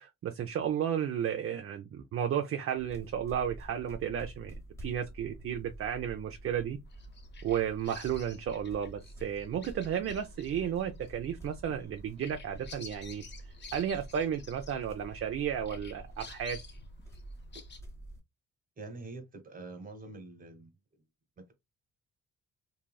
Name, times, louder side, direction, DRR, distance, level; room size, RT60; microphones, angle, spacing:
voice 1, 0.0-4.6 4.8-6.8 7.4-13.2 13.7-16.6, right 9 dB, 45° right, 0.5 m, -33 dB
sound 1, 2.8-18.2, right 1 dB, 10° left, 0.9 m, -48 dB
Bird vocalization bird call bird song, 6.9-15.3 15.6-17.8, left 5 dB, 35° left, 0.7 m, -52 dB
voice 2, 18.8-20.7 21.4-21.5, right 3 dB, 30° right, 1.1 m, -45 dB
2.9 x 2.7 x 2.2 m
cardioid pair, 90°, 30 cm